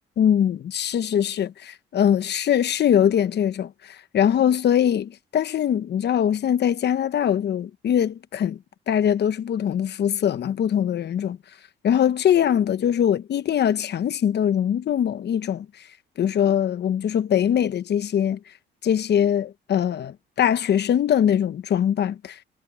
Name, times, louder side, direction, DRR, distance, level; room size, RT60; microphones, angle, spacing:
voice 1, 0.2-8.6 8.9-11.4 11.8-15.7 16.2-18.4 18.8-22.4, left 9 dB, 60° left, 1.0 m, -22 dB
cardioid pair, 90°, 20 cm